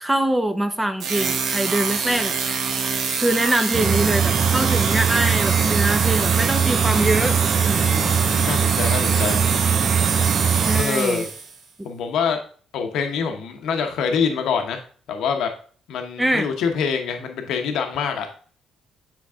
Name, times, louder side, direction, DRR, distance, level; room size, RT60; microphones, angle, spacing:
voice 1, 0.0-2.4 3.2-7.9 10.7-11.3 16.2-16.5, right 1 dB, 10° right, 8 dB, 0.7 m, -23 dB
sound 1, 1.0-11.6, right 5 dB, 65° right, 1.0 m, -25 dB
sound 2, 3.7-10.8, right 7 dB, 50° right, 0.4 m, -21 dB
voice 2, 7.7-9.5 10.7-11.3 11.8-12.4 12.7-14.8 15.1-15.5 15.9-18.3, left 6 dB, 80° left, 5 dB, 0.9 m, -25 dB
7.7 x 4.6 x 3.6 m, 0.43 s
cardioid pair, 90°, 0 cm